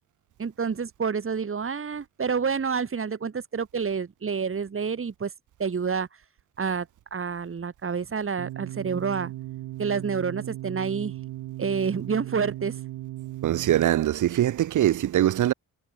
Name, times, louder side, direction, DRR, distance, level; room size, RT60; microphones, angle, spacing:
voice 1, 0.4-5.3 5.6-6.1 6.6-9.3 9.8-11.1 11.6-12.7, right 6 dB, 35° right, 2.7 m, -28 dB
sound 1, 8.4-13.8, right 16 dB, 80° right, 1.1 m, -37 dB
voice 2, 13.4-15.5, right 12 dB, 60° right, 0.7 m, -22 dB
cardioid pair, 75°, 35 cm